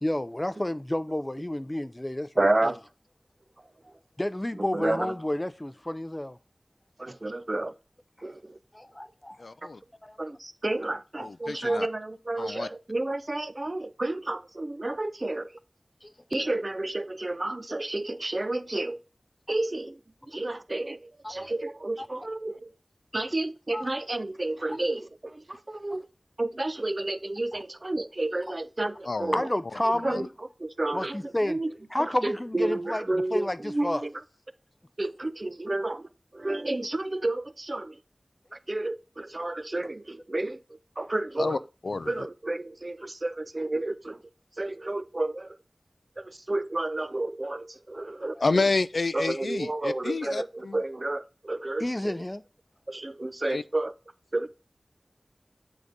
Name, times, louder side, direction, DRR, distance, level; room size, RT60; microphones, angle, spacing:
voice 1, 0.0-2.8 4.2-6.4 8.7-9.4 10.0-10.2 11.4-11.8 12.4-12.5 16.0-16.5 20.3-20.6 21.2-21.5 22.0-22.1 23.7-23.9 24.7-24.8 25.9-26.0 27.5-27.6 29.3-30.3 30.9-31.6 31.9-34.1 39.4-39.6 48.3-48.5 51.8-52.4, left 1 dB, 25° left, 0.4 m, -31 dB
voice 2, 2.4-2.8 4.7-5.1 7.0-7.7 8.2-8.5 10.2-15.5 16.3-19.0 19.5-20.0 20.3-21.0 21.3-22.7 23.1-25.4 25.7-26.1 26.4-29.4 30.0-30.2 30.6-31.2 31.5-31.7 32.2-34.1 35.0-36.1 36.3-37.9 38.7-40.6 41.0-41.6 42.1-44.2 44.6-45.5 46.2-48.6 49.1-52.1 52.9-53.9 54.3-54.5, right 2 dB, 45° right, 0.5 m, -30 dB
voice 3, 9.4-9.8 11.2-11.9 12.4-12.7 29.1-29.4 30.1-30.2 41.4-41.6 41.8-42.3 48.4-50.8 53.5-53.6, left 3 dB, 90° left, 0.3 m, -29 dB
8.0 x 3.9 x 3.6 m
wide cardioid pair, 55°, 0 cm